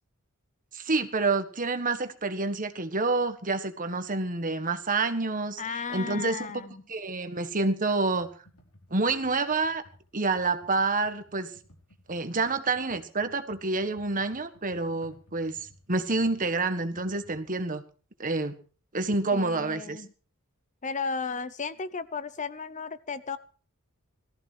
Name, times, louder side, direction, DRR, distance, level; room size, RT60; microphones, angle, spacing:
voice 1, 0.7-5.6 5.9-6.6 6.9-8.3 8.9-9.8 10.1-11.5 12.1-17.8 18.2-18.6 18.9-20.0, right 3 dB, 40° right, 9 dB, 1.6 m, -28 dB
voice 2, 5.6-6.8 19.3-20.1 20.8-23.4, left 5 dB, 35° left, 14 dB, 0.8 m, -34 dB
Computer keyboard, 8.1-17.6, left 1 dB, 90° left, 5.1 m, -58 dB
18.5 x 14.5 x 4.7 m, 0.39 s
head